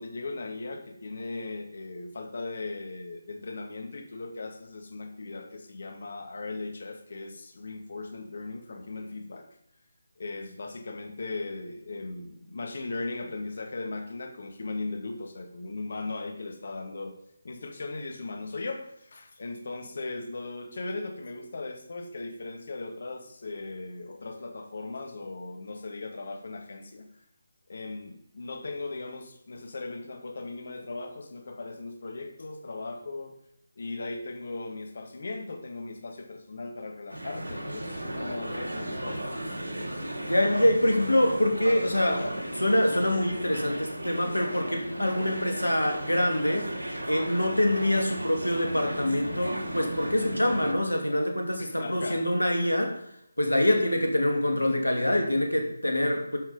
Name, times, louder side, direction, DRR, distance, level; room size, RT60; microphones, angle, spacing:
voice 1, 0.0-9.5 10.2-17.2 17.4-27.1 27.7-33.3 33.8-39.5 51.6-52.2, left 3 dB, 55° left, 4 dB, 1.9 m, -38 dB
sound 1, 37.1-50.7, right 1 dB, 75° right, 2.5 m, -35 dB
voice 2, 40.2-46.7 47.1-53.0 53.4-56.4, left 1 dB, 90° left, 4 dB, 2.6 m, -25 dB
11.0 x 6.4 x 5.1 m, 0.77 s
figure-of-eight pair, 155°, 0 cm